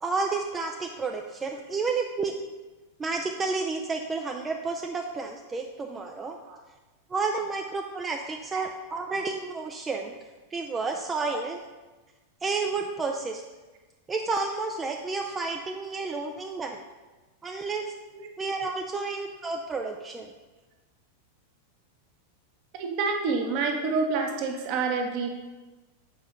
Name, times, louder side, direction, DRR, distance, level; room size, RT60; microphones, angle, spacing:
voice 1, 0.0-2.3 3.0-6.4 7.1-10.2 10.5-11.6 12.4-13.4 14.1-16.8 17.4-17.9 18.4-20.3, right 4 dB, 15° right, 2 dB, 0.5 m, -31 dB
voice 2, 22.8-25.3, right 4 dB, 45° right, 2 dB, 1.1 m, -28 dB
7.5 x 4.9 x 3.8 m, 1.2 s
figure-of-eight pair, 90°, 0 cm